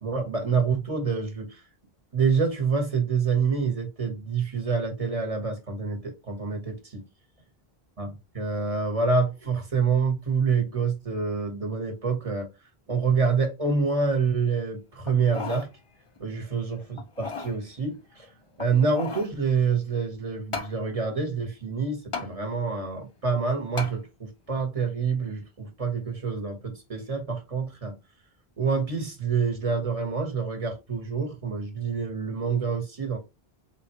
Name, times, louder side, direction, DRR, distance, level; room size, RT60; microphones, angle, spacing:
voice 1, 0.0-1.6 2.1-7.0 8.0-8.1 8.3-12.5 12.9-15.7 16.2-18.3 18.6-28.0 28.6-33.2, right 5 dB, 35° right, 1.2 m, -27 dB
sound 1, 15.1-15.7 16.2-16.3 17.0-17.6 18.6-19.3 20.5-20.8 22.1-22.3 23.8-24.0 24.6-24.7, left 4 dB, 35° left, 0.7 m, -35 dB
4.3 x 3.8 x 2.9 m
omnidirectional pair, 1.0 m